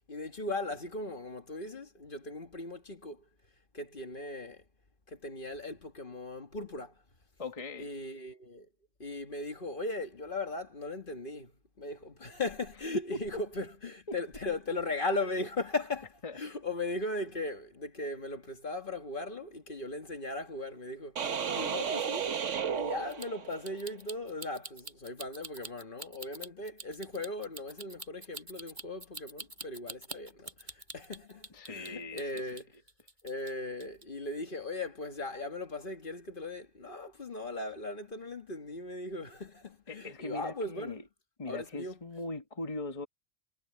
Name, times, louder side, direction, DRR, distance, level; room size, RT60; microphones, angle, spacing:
voice 1, 0.1-3.3 3.7-4.6 5.1-6.9 7.8-8.7 9.0-22.3 22.7-32.7 33.2-41.1 41.5-42.0, left 2 dB, 45° left, 1.8 m, -38 dB
voice 2, 7.4-7.9 14.1-14.2 16.2-16.4 31.5-32.4 39.9-41.0 41.4-43.1, left 2 dB, 30° left, 1.4 m, -40 dB
sound 1, 21.2-23.8, right 7 dB, 85° right, 1.5 m, -33 dB
sound 2, 23.1-31.9 32.2-33.5 33.8-34.0, right 2 dB, 40° right, 6.2 m, -45 dB
omnidirectional pair, 1.2 m